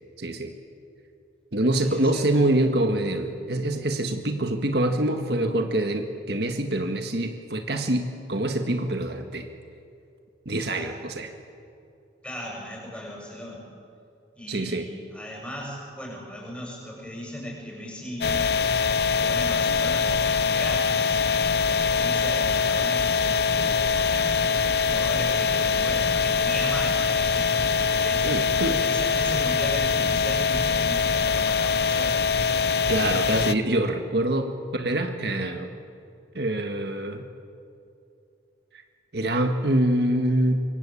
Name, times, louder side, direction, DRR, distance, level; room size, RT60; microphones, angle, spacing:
voice 1, 0.2-0.5 1.5-9.5 10.5-11.3 14.5-14.9 28.2-28.8 32.9-35.7 36.4-37.2 39.1-40.6, right 1 dB, 60° right, 5 dB, 1.8 m, -25 dB
voice 2, 1.8-2.3 10.7-10.9 12.2-13.6 14.3-18.4 18.8-18.9 19.2-21.2 21.6-24.3 24.9-27.7 28.0-28.5 28.8-32.2, equal, 5° left, -2 dB, 7.8 m, -37 dB
sound 1, 18.2-33.5, left 5 dB, 60° left, 0.7 m, -23 dB
26.0 x 24.0 x 8.8 m, 2.6 s
head